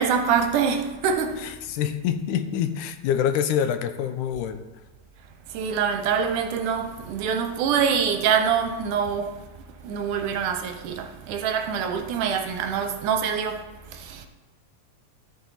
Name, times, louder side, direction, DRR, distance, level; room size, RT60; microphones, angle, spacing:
voice 1, 0.0-1.4 5.5-9.4 9.8-13.6 13.9-14.3, right 7 dB, 80° right, 2.3 m, -25 dB
voice 2, 1.4-4.7, left 9 dB, 80° left, 2.1 m, -26 dB
12.5 x 7.0 x 4.1 m
omnidirectional pair, 3.6 m